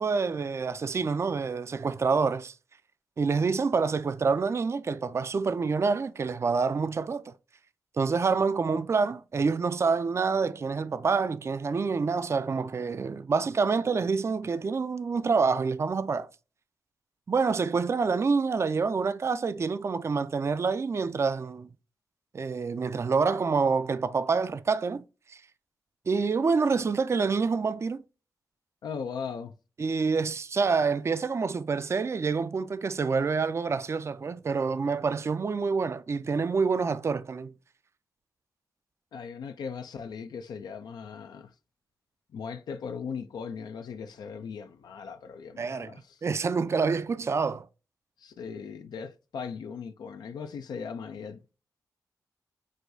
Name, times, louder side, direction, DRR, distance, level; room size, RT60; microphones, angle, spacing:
voice 1, 0.0-2.5 3.2-7.3 8.0-16.3 17.3-21.7 22.3-25.0 25.3-25.4 26.1-28.0 29.8-37.5 45.6-45.9 46.2-47.7, right 5 dB, 40° right, 0.3 m, -27 dB
voice 2, 28.8-29.5 39.1-41.5 42.3-46.2 48.2-51.5, left 6 dB, 85° left, 0.4 m, -38 dB
6.2 x 2.3 x 2.6 m
cardioid pair, 50°, 7 cm